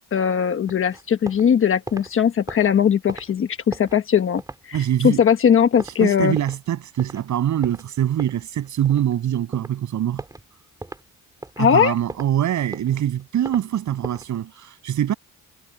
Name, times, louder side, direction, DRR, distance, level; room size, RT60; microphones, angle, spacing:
voice 1, 0.1-4.4 4.7-6.4 11.6-11.9, left 8 dB, 40° left, 1.2 m, -19 dB
sound 1, 0.7-1.5 1.8-6.7 7.0-7.2 7.6-9.2 9.5-9.8 10.2-10.5 10.8-11.0 11.4-12.3 12.6-13.6 14.0-14.4, right 2 dB, 10° right, 3.5 m, -38 dB
voice 2, 4.7-5.2 5.8-10.2 11.6-15.1, right 11 dB, 55° right, 7.1 m, -24 dB
cardioid pair, 175°, 34 cm